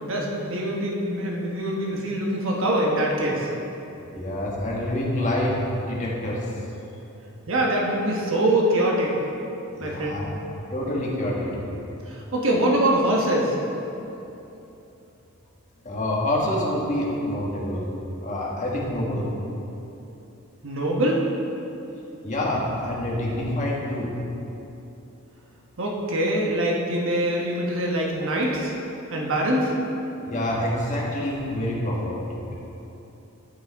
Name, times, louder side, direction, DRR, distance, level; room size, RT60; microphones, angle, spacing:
voice 1, 0.0-3.5 7.5-9.2 9.8-10.2 12.1-13.5 20.6-21.3 25.8-28.7 29.1-29.7, right 1 dB, 65° right, -2 dB, 1.1 m, -24 dB
voice 2, 4.1-6.5 9.7-10.3 10.7-11.8 15.8-17.8 18.2-19.3 22.2-24.2 30.2-32.5, left 1 dB, 35° left, -4 dB, 1.5 m, -27 dB
12.5 x 5.5 x 3.5 m, 2.9 s
head